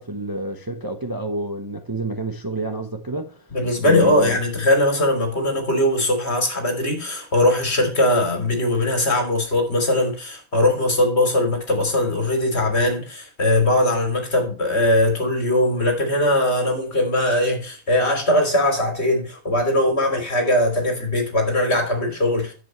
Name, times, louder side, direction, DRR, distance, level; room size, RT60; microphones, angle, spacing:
voice 1, 0.0-3.5 3.8-4.4, right 1 dB, 20° right, 0.9 m, -29 dB
voice 2, 3.5-22.5, left 1 dB, 50° left, 3.5 m, -20 dB
10.5 x 8.2 x 3.2 m
omnidirectional pair, 1.4 m